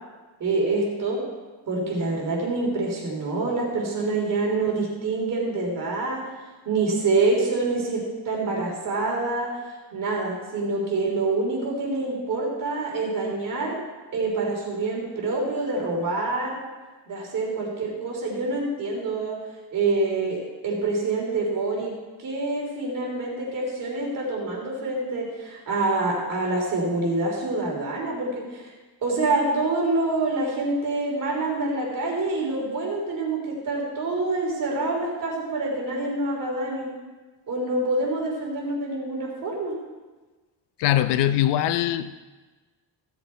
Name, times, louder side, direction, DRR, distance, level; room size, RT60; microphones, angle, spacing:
voice 1, 0.4-1.2 1.7-6.2 6.6-9.5 9.9-13.8 14.1-16.6 17.1-19.3 19.7-21.9 22.2-28.7 29.0-36.9 37.5-39.7, right 2 dB, 55° right, -2 dB, 3.4 m, -26 dB
voice 2, 40.8-42.2, left 12 dB, 90° left, 12 dB, 0.6 m, -22 dB
15.5 x 7.1 x 4.5 m, 1.3 s
cardioid pair, 135°, 40 cm